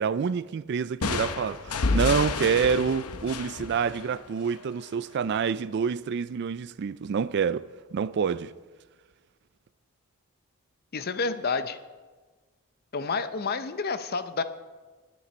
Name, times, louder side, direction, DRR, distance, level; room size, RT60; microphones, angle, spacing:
voice 1, 0.0-8.5, right 6 dB, 50° right, 0.3 m, -27 dB
sound 1, 1.0-4.7, left 4 dB, 90° left, 0.8 m, -30 dB
voice 2, 10.9-11.8 12.9-14.4, left 4 dB, 45° left, 0.6 m, -29 dB
19.0 x 8.5 x 4.3 m
head